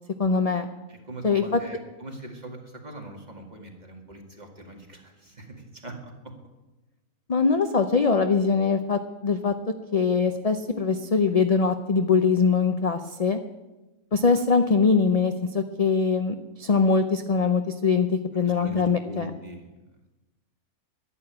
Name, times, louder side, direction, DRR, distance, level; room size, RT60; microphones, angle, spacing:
voice 1, 0.2-0.7 1.2-1.6 7.3-9.5 9.9-13.4 14.1-19.3, left 5 dB, 45° left, 7 dB, 0.5 m, -22 dB
voice 2, 0.9-6.3 18.4-19.7, right 1 dB, 30° right, 2 dB, 2.2 m, -41 dB
11.0 x 11.0 x 8.7 m, 1.1 s
omnidirectional pair, 1.5 m